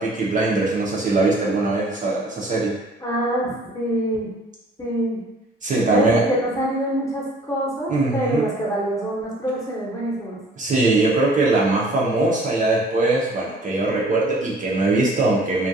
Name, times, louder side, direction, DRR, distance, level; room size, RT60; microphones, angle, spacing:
voice 1, 0.0-2.8 5.6-6.2 7.9-8.5 10.6-15.7, right 2 dB, 40° right, -5 dB, 0.5 m, -21 dB
voice 2, 3.0-4.3 4.8-5.2 5.9-10.4, right 1 dB, 15° left, -6 dB, 0.8 m, -25 dB
2.3 x 2.1 x 2.6 m, 0.97 s
cardioid pair, 90°, 20 cm